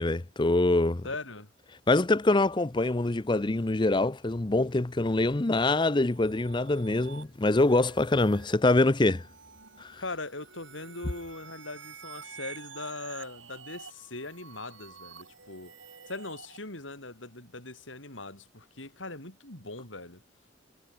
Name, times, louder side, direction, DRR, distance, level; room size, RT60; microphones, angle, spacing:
voice 1, 0.0-1.0 1.9-9.2 9.8-10.0, left 2 dB, 25° left, 0.6 m, -24 dB
voice 2, 1.0-1.5 10.0-15.7 16.1-20.2, left 2 dB, 85° left, 7.6 m, -40 dB
sound 1, 5.9-16.6, right 6 dB, 80° right, 7.9 m, -49 dB
head